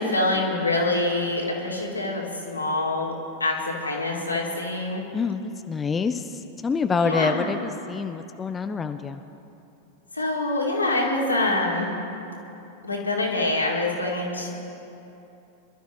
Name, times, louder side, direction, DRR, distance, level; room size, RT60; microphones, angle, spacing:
voice 1, 0.0-3.1 3.4-5.0 7.0-7.5 10.1-11.9 12.8-14.5, left 2 dB, 80° left, -2 dB, 2.4 m, -25 dB
voice 2, 5.1-9.2, left 5 dB, 15° left, 8 dB, 0.5 m, -27 dB
25.0 x 12.5 x 3.1 m, 2.9 s
figure-of-eight pair, 90°, 0 cm